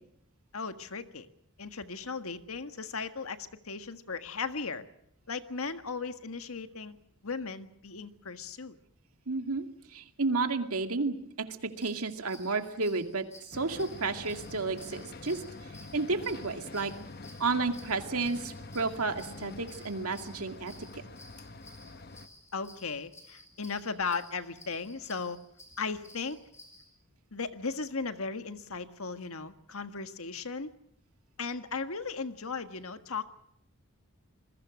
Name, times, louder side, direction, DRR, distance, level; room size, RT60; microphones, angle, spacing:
voice 1, 0.5-1.3 1.6-4.8 5.3-7.0 7.2-8.8 22.5-25.4 25.8-26.4 27.3-30.7 31.4-33.3, left 4 dB, 80° left, 9 dB, 1.6 m, -36 dB
voice 2, 9.3-9.6 9.9-11.5 11.8-13.3 13.5-15.4 15.9-16.9 17.4-20.7, right 3 dB, 90° right, 6 dB, 2.3 m, -31 dB
sound 1, 11.7-26.9, left 2 dB, 10° left, 4.8 m, -55 dB
sound 2, 13.5-22.3, left 3 dB, 45° left, 1.2 m, -46 dB
27.5 x 21.5 x 6.3 m, 0.72 s
head